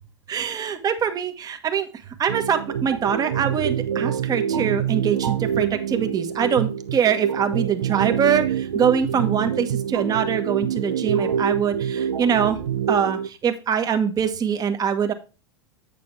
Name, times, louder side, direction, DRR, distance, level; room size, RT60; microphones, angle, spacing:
voice 1, 0.3-1.9 2.2-12.6 12.9-15.1, right 7 dB, 25° right, 8 dB, 1.4 m, -23 dB
sound 1, 2.3-13.3, right 8 dB, 80° right, 0.6 m, -26 dB
8.5 x 6.8 x 3.3 m, 0.32 s
hypercardioid pair, 100°, 14 cm